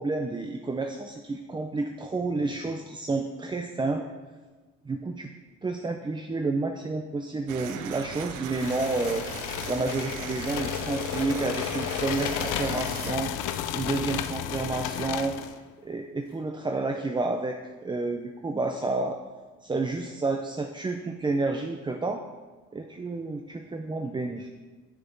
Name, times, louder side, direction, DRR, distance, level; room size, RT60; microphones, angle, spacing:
voice 1, 0.0-4.0 4.9-5.3 5.6-9.2 9.7-13.3 13.7-15.4 15.8-19.2 19.6-22.2 22.7-24.5, right 3 dB, 15° right, 4 dB, 0.4 m, -30 dB
sound 1, 7.5-13.2, right 8 dB, 90° right, 0.6 m, -39 dB
sound 2, 8.5-15.6, left 10 dB, 85° left, 0.5 m, -33 dB
6.8 x 5.9 x 3.9 m, 1.3 s
cardioid pair, 90°, 30 cm